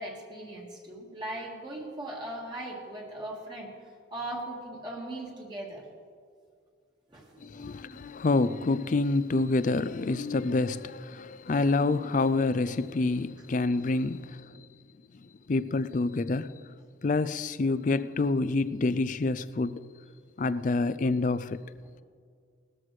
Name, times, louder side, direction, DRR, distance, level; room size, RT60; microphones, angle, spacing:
voice 1, 0.0-3.8 4.1-5.9 7.1-7.7, right 1 dB, 20° right, 1.8 m, -39 dB
voice 2, 7.4-14.6 15.2-16.6 17.0-19.8 20.4-21.6, left 3 dB, 40° left, 0.4 m, -27 dB
19.0 x 13.5 x 3.2 m
head